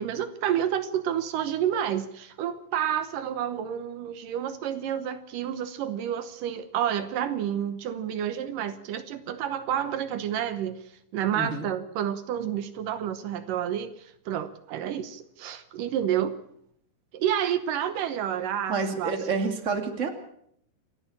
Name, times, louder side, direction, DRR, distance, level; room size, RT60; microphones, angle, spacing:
voice 1, 0.0-10.8 11.1-16.4 17.1-19.1, right 10 dB, 80° right, 11 dB, 2.7 m, -29 dB
voice 2, 11.3-11.7 18.7-20.1, right 4 dB, 25° right, 5 dB, 2.5 m, -28 dB
28.0 x 11.0 x 8.7 m, 0.69 s
omnidirectional pair, 3.9 m